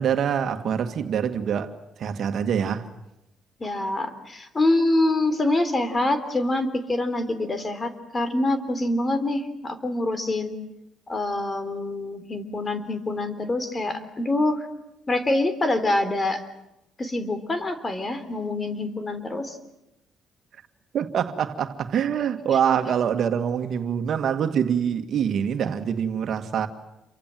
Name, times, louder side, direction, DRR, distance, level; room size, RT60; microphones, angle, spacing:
voice 1, 0.0-1.7 2.0-2.8 20.9-26.7, right 8 dB, 65° right, 2.0 m, -25 dB
voice 2, 3.6-10.6 11.1-14.7 15.1-16.4 17.0-19.6, left 2 dB, 30° left, 3.5 m, -25 dB
28.5 x 24.0 x 7.7 m
cardioid pair, 90°, 0 cm